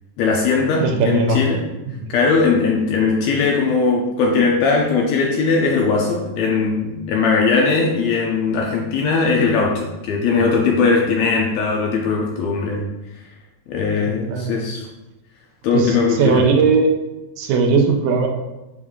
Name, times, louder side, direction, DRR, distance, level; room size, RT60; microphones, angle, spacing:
voice 1, 0.2-1.6 2.1-12.9 13.7-14.9 15.6-16.5, left 4 dB, 80° left, -1 dB, 1.7 m, -19 dB
voice 2, 0.8-1.4 1.9-2.2 14.1-14.5 15.7-16.9 17.4-18.3, right 4 dB, 85° right, 3 dB, 1.9 m, -18 dB
6.1 x 2.5 x 3.5 m, 1.0 s
omnidirectional pair, 3.3 m